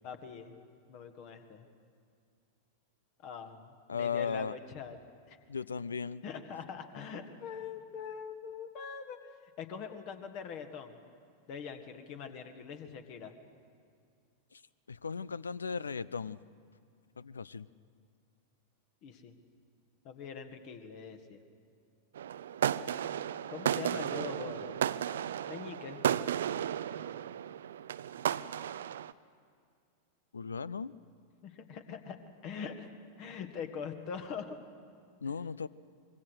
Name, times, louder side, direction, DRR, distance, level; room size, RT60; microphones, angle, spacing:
voice 1, 0.0-0.5 0.9-1.7 3.2-5.0 5.3-5.4 6.2-9.2 9.6-11.0 11.5-13.3 19.0-19.3 20.0-21.4 23.5-24.8 25.5-26.0 31.4-32.2 32.4-32.9 33.2-34.6, left 6 dB, 45° left, 8 dB, 1.8 m, -43 dB
voice 2, 3.9-4.5 5.5-6.2 14.5-14.6 14.9-16.4 17.2-17.7 30.3-30.9 35.2-35.7, left 5 dB, 75° left, 20 dB, 0.5 m, -36 dB
sound 1, 22.1-29.1, right 10 dB, 60° right, 0.5 m, -34 dB
25.5 x 22.0 x 6.3 m, 2.3 s
figure-of-eight pair, 90°, 0 cm